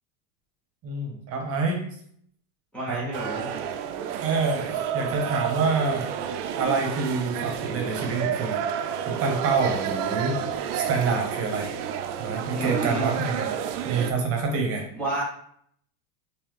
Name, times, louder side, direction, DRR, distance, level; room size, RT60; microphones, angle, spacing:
voice 1, 0.8-1.8 2.9-3.0 4.2-6.1 6.5-8.6 9.1-10.4 10.7-11.7 12.2-13.5 13.8-14.8, right 4 dB, 30° right, 2 dB, 0.8 m, -27 dB
voice 2, 2.7-3.5 12.5-13.1 14.9-15.2, right 1 dB, 5° left, -9 dB, 0.3 m, -30 dB
sound 1, 3.1-14.1, right 8 dB, 70° right, 0.5 m, -30 dB
3.7 x 2.8 x 3.0 m, 0.66 s
supercardioid pair, 150°, 49 cm